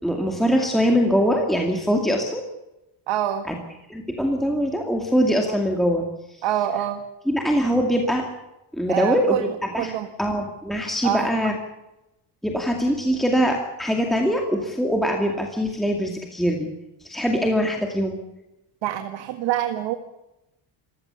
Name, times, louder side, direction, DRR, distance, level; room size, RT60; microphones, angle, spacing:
voice 1, 0.0-2.4 3.5-3.6 3.9-6.4 7.3-8.2 8.7-9.9 10.2-11.6 12.4-16.7 17.0-18.2, equal, ahead, 1 dB, 2.3 m, -22 dB
voice 2, 3.1-3.5 5.5-5.6 6.4-7.0 8.9-9.4 9.8-10.1 11.0-11.3 18.8-20.0, right 12 dB, 65° right, 7 dB, 1.8 m, -25 dB
28.0 x 16.0 x 7.0 m, 0.93 s
cardioid pair, 160°, 49 cm